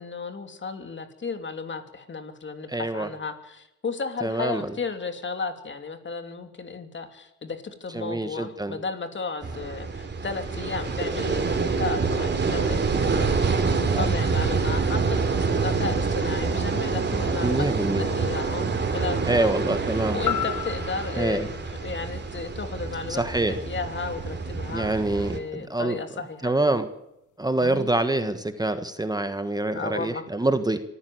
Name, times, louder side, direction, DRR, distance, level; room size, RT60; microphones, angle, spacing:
voice 1, 0.0-19.7 20.1-26.5 27.6-27.9 29.7-30.2, left 4 dB, 40° left, 7 dB, 3.0 m, -34 dB
voice 2, 2.7-3.1 4.2-4.7 7.9-8.8 13.9-14.1 17.4-18.1 19.3-20.2 21.2-21.5 23.1-23.6 24.7-26.0 26.4-26.9 27.4-30.8, right 2 dB, 15° right, 9 dB, 1.5 m, -25 dB
sound 1, 9.4-25.4, right 4 dB, 35° right, 3.8 m, -26 dB
sound 2, 20.2-24.3 24.8-24.9, left 12 dB, 75° left, 1.4 m, -35 dB
24.5 x 14.0 x 8.0 m, 0.86 s
cardioid pair, 90°, 30 cm